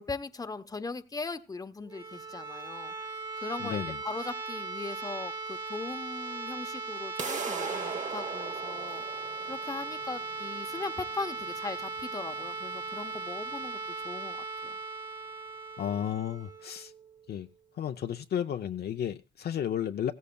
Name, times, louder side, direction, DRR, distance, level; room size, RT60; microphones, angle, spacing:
voice 1, 0.0-9.0 9.5-14.4 14.6-14.8, left 3 dB, 20° left, 0.9 m, -39 dB
sound 1, 1.8-17.6, right 3 dB, 20° right, 1.7 m, -38 dB
voice 2, 3.6-4.0 15.8-16.9 17.3-17.5 17.8-20.1, left 9 dB, 55° left, 0.6 m, -33 dB
sound 2, 7.2-13.2, right 5 dB, 40° right, 1.0 m, -39 dB
15.5 x 14.0 x 2.3 m
cardioid pair, 90°, 20 cm